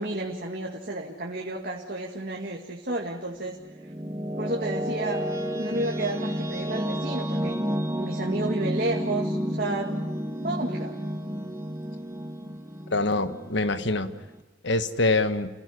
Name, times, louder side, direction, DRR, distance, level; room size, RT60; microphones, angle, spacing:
voice 1, 0.0-3.6 4.4-5.2 5.5-10.0 10.4-11.0, right 2 dB, 50° right, 0 dB, 2.1 m, -31 dB
sound 1, 3.4-14.4, equal, 15° right, 1.6 m, -31 dB
voice 2, 12.9-14.1 14.6-15.5, left 2 dB, 60° left, 11 dB, 1.5 m, -24 dB
29.5 x 16.5 x 9.7 m, 1.1 s
head